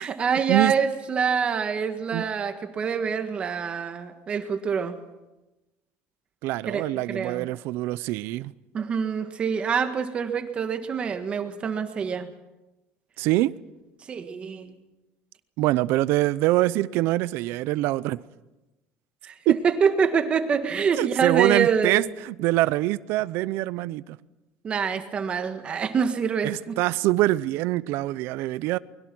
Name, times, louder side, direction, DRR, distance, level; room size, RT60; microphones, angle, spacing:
voice 1, 0.0-5.0 6.7-7.5 8.7-12.3 14.1-14.8 19.2-22.1 24.6-26.8, right 6 dB, 25° right, 1.5 m, -26 dB
voice 2, 6.4-8.5 13.2-13.5 15.6-18.2 19.5-19.6 21.0-24.2 26.4-28.8, right 17 dB, 60° right, 0.6 m, -24 dB
24.0 x 21.5 x 6.2 m
cardioid pair, 170°, 4 cm